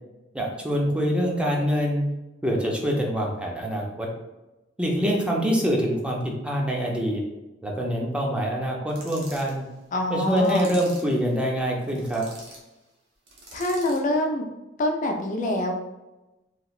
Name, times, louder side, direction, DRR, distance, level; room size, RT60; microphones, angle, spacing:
voice 1, 0.3-2.1 2.4-4.1 4.8-7.2 7.6-9.6 10.1-12.3, equal, 5° right, -2 dB, 0.5 m, -25 dB
sound 1, 8.9-9.6 10.3-11.2 11.8-12.6 13.3-14.1, right 2 dB, 65° right, 0.8 m, -44 dB
voice 2, 9.9-10.7 13.5-14.4 14.8-15.7, left 1 dB, 45° left, 2 dB, 0.4 m, -25 dB
3.1 x 2.8 x 2.4 m, 1.0 s
head